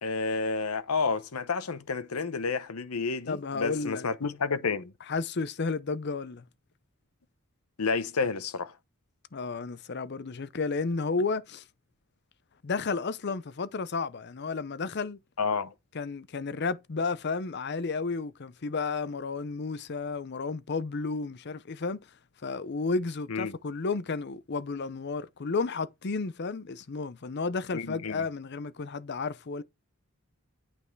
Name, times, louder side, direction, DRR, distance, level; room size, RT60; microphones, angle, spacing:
voice 1, 0.0-4.9 7.8-8.7 15.4-15.7 23.3-23.5 27.7-28.2, left 4 dB, 85° left, 0.9 m, -30 dB
voice 2, 3.3-4.1 5.1-6.4 9.3-11.6 12.6-15.2 15.9-22.1 22.4-29.6, left 4 dB, 50° left, 0.6 m, -32 dB
8.9 x 5.4 x 4.5 m
head